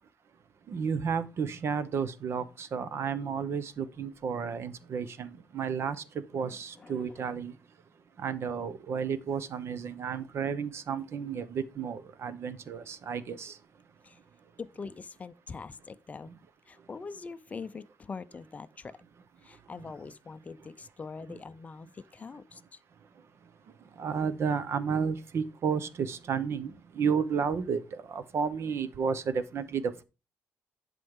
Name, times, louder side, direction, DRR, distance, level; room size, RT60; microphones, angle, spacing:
voice 1, 0.7-7.6 8.2-13.6 21.3-21.4 23.4-23.5 23.8-30.0, right 6 dB, 50° right, 0.9 m, -32 dB
voice 2, 6.3-7.2 14.0-14.2 14.6-16.3 16.7-19.0 19.4-22.8, left 4 dB, 25° left, 0.5 m, -43 dB
11.0 x 5.3 x 3.7 m
cardioid pair, 130°, 6 cm